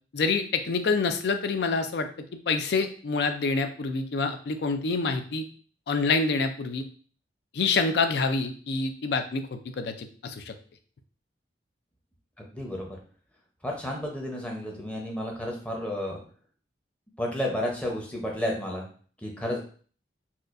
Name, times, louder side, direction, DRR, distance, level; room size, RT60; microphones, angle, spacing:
voice 1, 0.1-2.1 2.5-5.4 5.9-6.8 7.5-10.5, left 4 dB, 60° left, 7 dB, 0.4 m, -27 dB
voice 2, 12.4-13.0 13.6-16.2 17.2-18.9 19.2-19.6, left 1 dB, 5° left, -1 dB, 0.7 m, -31 dB
4.2 x 2.4 x 2.5 m, 0.43 s
head